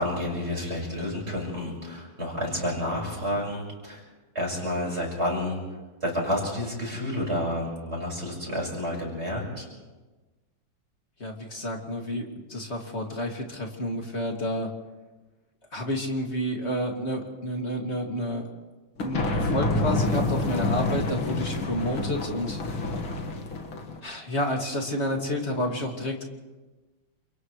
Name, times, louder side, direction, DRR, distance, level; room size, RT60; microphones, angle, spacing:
voice 1, 0.0-4.0 4.3-5.6 6.0-9.7 21.9-22.0, left 1 dB, 30° right, -2 dB, 6.0 m, -30 dB
voice 2, 11.2-14.7 15.7-18.5 19.0-22.8 24.0-26.2, left 1 dB, 30° left, 1 dB, 2.8 m, -30 dB
sound 1, 19.0-24.0, left 2 dB, 80° left, 2.7 m, -28 dB
29.5 x 27.5 x 3.3 m, 1.2 s
omnidirectional pair, 2.2 m